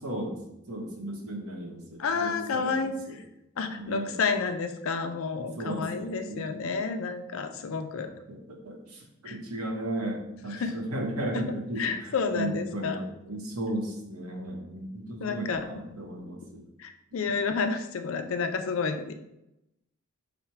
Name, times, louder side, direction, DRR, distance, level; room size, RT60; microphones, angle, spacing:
voice 1, 0.0-0.4 0.7-3.1 3.7-4.2 5.4-6.5 7.9-8.4 8.6-10.2 10.4-11.9 12.3-16.6 17.2-17.4, right 1 dB, 80° right, 1 dB, 0.9 m, -35 dB
voice 2, 2.0-3.2 3.6-8.1 9.3-9.4 10.5-10.8 11.3-13.0 15.2-15.7 16.8-19.1, left 5 dB, 65° left, 7 dB, 0.4 m, -30 dB
4.3 x 2.1 x 4.6 m, 0.86 s
head